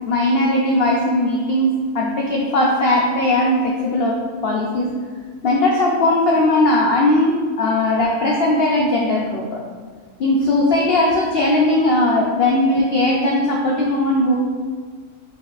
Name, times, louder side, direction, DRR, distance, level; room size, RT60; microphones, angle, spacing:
voice 1, 0.0-4.9 5.4-9.6 10.2-14.3, left 1 dB, 90° left, -2 dB, 0.5 m, -18 dB
4.5 x 4.3 x 2.5 m, 1.5 s
omnidirectional pair, 1.6 m